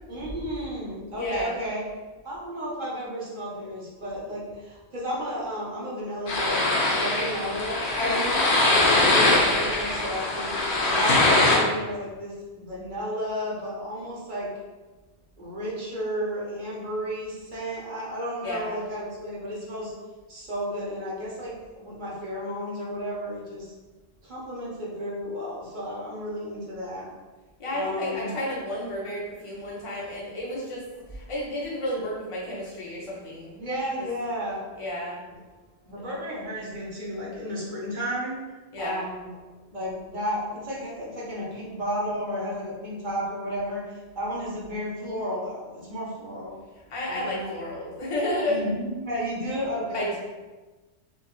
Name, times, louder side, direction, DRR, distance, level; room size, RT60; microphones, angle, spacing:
voice 1, 0.1-1.8 2.2-8.3 8.7-10.5 10.8-14.5 15.4-19.9 20.3-23.7 24.2-27.1 27.7-28.3 30.9-31.0 33.6-34.6 35.8-39.3 39.7-46.6 47.1-47.6 48.5-50.2, equal, 45° right, -6 dB, 1.0 m, -33 dB
voice 2, 1.2-1.6 8.0-8.4 18.4-18.8 27.6-30.8 31.1-33.6 34.0-34.1 34.8-35.2 38.7-39.1 46.9-48.6 49.9-50.2, left 1 dB, 35° left, -5 dB, 0.7 m, -31 dB
sound 1, 6.3-11.6, left 2 dB, 75° left, 1.0 m, -22 dB
3.6 x 2.6 x 2.3 m, 1.2 s
omnidirectional pair, 1.1 m